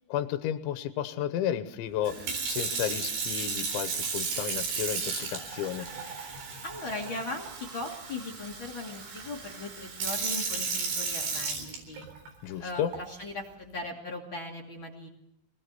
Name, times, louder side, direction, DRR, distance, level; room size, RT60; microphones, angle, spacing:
voice 1, 0.1-5.9 12.4-12.9, left 10 dB, 90° left, 10 dB, 3.4 m, -32 dB
Sink (filling or washing) / Fill (with liquid), 2.0-12.3 12.9-13.2, right 5 dB, 80° right, 6.3 m, -34 dB
voice 2, 6.6-12.1 12.6-15.1, left 2 dB, 35° left, 3 dB, 2.6 m, -39 dB
25.5 x 19.0 x 8.2 m, 0.78 s
omnidirectional pair, 5.2 m